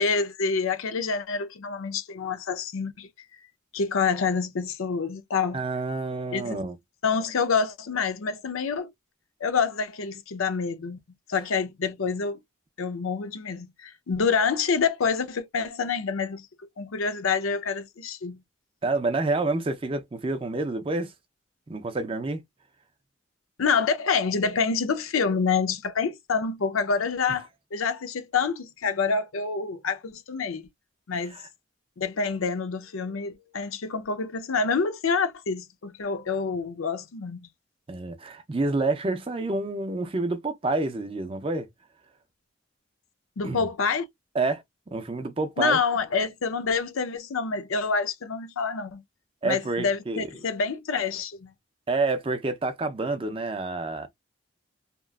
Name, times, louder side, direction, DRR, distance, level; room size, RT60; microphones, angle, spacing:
voice 1, 0.0-3.1 3.7-5.6 6.3-6.6 7.0-8.9 9.4-11.0 11.3-12.4 12.8-16.5 16.8-18.4 23.6-30.7 31.1-31.4 32.0-37.5 43.4-44.1 45.6-49.0 49.4-51.5, left 5 dB, 85° left, 0.6 m, -27 dB
voice 2, 5.5-6.8 18.8-21.1 21.7-22.4 31.2-31.5 37.9-41.7 43.4-43.6 44.3-45.8 49.4-50.3 51.9-54.1, right 3 dB, 25° right, 0.4 m, -28 dB
2.9 x 2.4 x 2.3 m
head